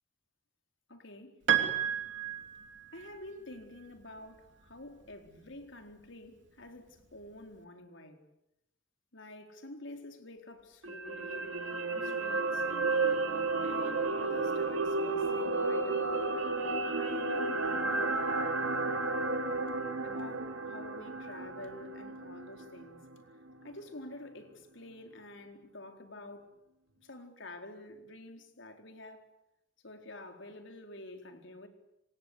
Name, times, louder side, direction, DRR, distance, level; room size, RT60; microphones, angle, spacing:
voice 1, 0.9-1.4 2.9-8.2 9.1-12.6 13.6-16.2 16.8-18.3 20.0-23.0 23.6-26.5 27.0-29.3 29.8-31.7, left 1 dB, 70° left, 4.4 m, -48 dB
Piano, 1.5-3.2, right 9 dB, 65° right, 3.4 m, -31 dB
sound 1, 10.8-23.1 23.5-23.6, right 3 dB, 80° right, 3.5 m, -32 dB
27.5 x 26.0 x 8.2 m
head